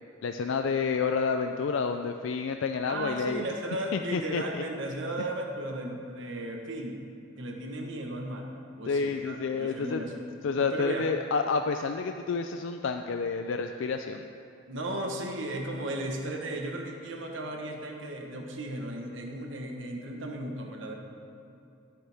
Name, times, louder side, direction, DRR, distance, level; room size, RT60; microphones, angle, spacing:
voice 1, 0.2-3.4 3.9-4.6 8.9-10.0 10.4-14.3, left 5 dB, 70° left, 6 dB, 0.4 m, -29 dB
voice 2, 2.9-7.0 7.4-8.5 8.8-10.3 10.6-11.1 14.7-20.9, right 1 dB, 65° right, 2 dB, 1.1 m, -35 dB
12.0 x 10.0 x 3.5 m, 2.7 s
head